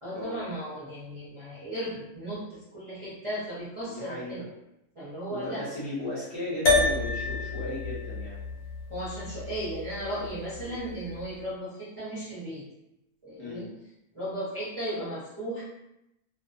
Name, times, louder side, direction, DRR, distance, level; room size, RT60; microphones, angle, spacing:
voice 1, 0.0-4.4 4.9-5.6 8.9-12.6 13.2-13.7 14.1-15.6, right 1 dB, 30° right, -10 dB, 0.6 m, -36 dB
voice 2, 3.8-4.5 5.3-8.4 10.6-10.7 13.4-13.6, left 1 dB, 55° left, -6 dB, 0.8 m, -36 dB
sound 1, 6.7-11.2, left 3 dB, 90° left, 1.2 m, -29 dB
2.4 x 2.3 x 2.4 m, 0.87 s
omnidirectional pair, 1.6 m